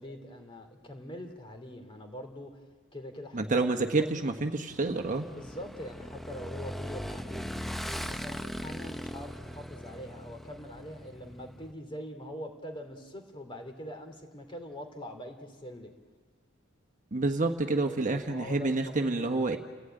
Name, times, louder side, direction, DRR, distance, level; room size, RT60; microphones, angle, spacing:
voice 1, 0.0-2.6 2.9-4.1 5.3-15.9 17.8-19.3, equal, 25° left, 5 dB, 2.9 m, -43 dB
voice 2, 3.3-5.3 17.1-19.6, right 3 dB, 40° right, 5 dB, 1.2 m, -28 dB
Motorcycle / Engine, 4.7-11.7, equal, ahead, 0.7 m, -40 dB
30.0 x 15.5 x 9.0 m, 1.5 s
head